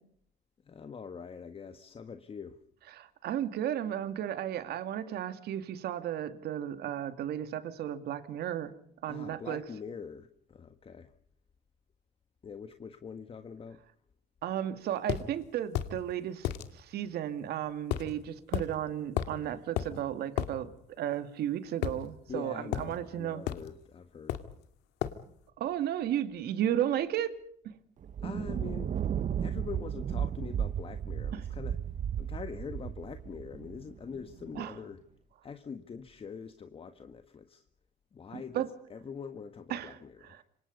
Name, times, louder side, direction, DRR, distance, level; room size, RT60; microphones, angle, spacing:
voice 1, 0.7-2.6 9.1-11.1 12.4-13.8 22.3-24.4 28.2-28.9 29.4-31.8 32.2-35.0 35.4-37.6 38.1-40.4, left 6 dB, 35° left, 8 dB, 1.7 m, -44 dB
voice 2, 2.9-8.7 9.0-9.6 14.4-20.7 21.0-23.4 25.6-27.4 27.6-27.7 31.3-31.4 34.6-34.7 38.3-38.7 39.7-40.0 40.3-40.4, right 11 dB, 70° right, 10 dB, 2.4 m, -34 dB
sound 1, 15.1-15.3 15.7-15.9 16.4-16.7 17.9-18.1 18.5-18.7 19.2-19.4 19.8-19.9 20.4-20.5 21.8-22.4 22.7-22.9 23.5-23.7 24.3-24.6 25.0-25.2, left 11 dB, 85° left, 2.1 m, -32 dB
Thunder, 28.0-34.7, right 8 dB, 45° right, 1.1 m, -34 dB
27.5 x 25.5 x 5.4 m, 0.64 s
cardioid pair, 110°, 17 cm